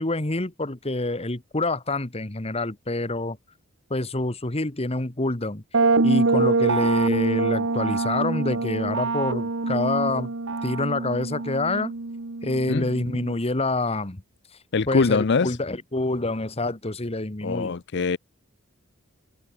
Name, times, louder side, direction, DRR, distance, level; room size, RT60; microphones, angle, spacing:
voice 1, 0.0-3.4 3.9-5.6 6.0-10.3 10.6-11.9 12.4-14.2 14.9-17.7, left 2 dB, 30° left, 1.6 m, -27 dB
sound 1, 5.7-13.4, right 3 dB, 65° right, 1.2 m, -25 dB
voice 2, 14.7-15.6 17.4-18.2, left 4 dB, 55° left, 0.6 m, -23 dB
head